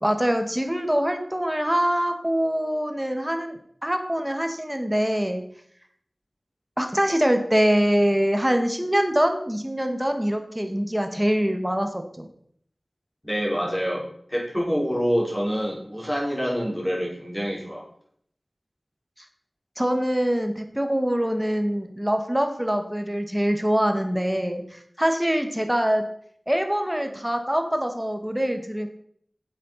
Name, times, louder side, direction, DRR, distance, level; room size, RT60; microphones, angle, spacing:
voice 1, 0.0-5.4 6.8-12.3 19.8-26.0 26.5-28.9, equal, 10° right, 5 dB, 1.9 m, -24 dB
voice 2, 13.2-17.8, equal, 15° left, -4 dB, 4.9 m, -26 dB
9.0 x 7.8 x 5.9 m, 0.65 s
wide cardioid pair, 45°, 0 cm